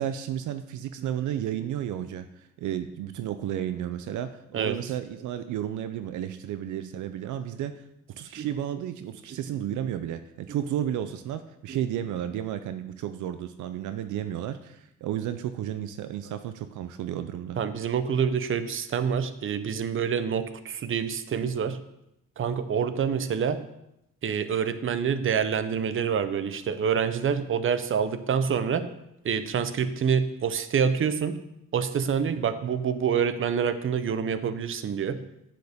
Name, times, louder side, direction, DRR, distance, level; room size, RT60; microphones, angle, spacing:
voice 1, 0.0-2.3 2.6-7.8 8.2-17.6, right 10 dB, 75° right, 11 dB, 0.6 m, -32 dB
voice 2, 17.6-21.8 22.4-23.6 24.2-28.8 29.2-31.4 31.7-35.2, right 7 dB, 45° right, 12 dB, 0.8 m, -27 dB
9.3 x 7.8 x 3.6 m, 0.83 s
cardioid pair, 90°, 30 cm